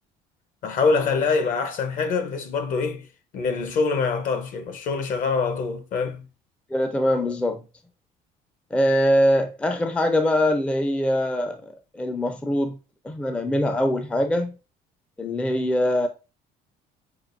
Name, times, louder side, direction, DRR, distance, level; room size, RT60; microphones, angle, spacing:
voice 1, 0.6-3.1 3.3-6.2 15.2-15.3, left 4 dB, 55° left, 0.9 m, -24 dB
voice 2, 6.7-7.7 8.7-12.8 13.0-14.6 15.2-16.1, left 1 dB, 5° left, 0.4 m, -23 dB
5.9 x 2.2 x 2.5 m
cardioid pair, 130°, 16 cm